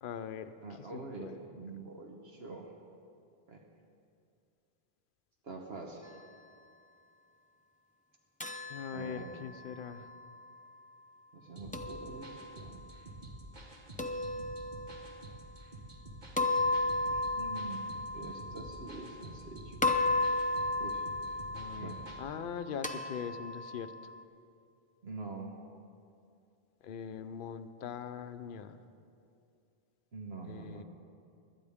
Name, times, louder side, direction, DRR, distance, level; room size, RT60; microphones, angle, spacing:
voice 1, 0.0-0.5 0.8-1.3 8.7-10.1 21.5-23.9 26.8-28.8 30.5-30.8, left 7 dB, 60° left, 10 dB, 0.7 m, -41 dB
voice 2, 0.6-2.7 3.5-3.6 5.4-6.1 8.9-9.4 11.3-12.8 17.1-17.8 18.1-19.8 20.8-21.0 21.7-22.0 25.0-25.6 30.1-30.8, right 3 dB, 75° right, 1 dB, 1.3 m, -45 dB
sound 1, 8.4-10.5 11.7-12.7 14.0-15.2 16.4-19.5 19.8-24.2, left 2 dB, 10° left, 0.4 m, -35 dB
sound 2, 11.6-22.2, right 1 dB, 45° right, 1.4 m, -49 dB
18.0 x 12.0 x 3.5 m, 2.5 s
omnidirectional pair, 1.1 m